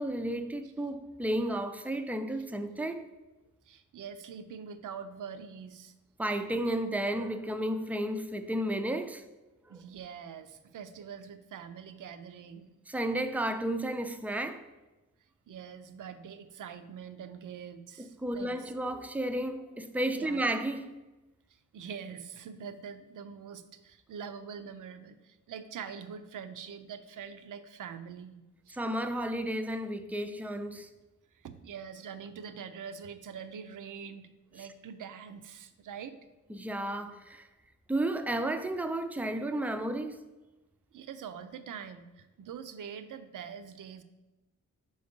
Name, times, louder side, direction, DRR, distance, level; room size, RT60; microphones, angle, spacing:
voice 1, 0.0-3.0 6.2-9.2 9.7-9.8 12.9-14.6 18.0-20.9 28.7-30.9 34.6-34.7 36.5-37.5 37.9-40.2, right 1 dB, 5° right, 0.3 m, -32 dB
voice 2, 3.7-5.9 9.7-12.7 15.5-18.7 20.1-20.4 21.7-28.8 31.4-36.2 40.9-44.0, right 7 dB, 80° right, 0.5 m, -44 dB
5.1 x 3.9 x 5.2 m
wide cardioid pair, 110°, 31 cm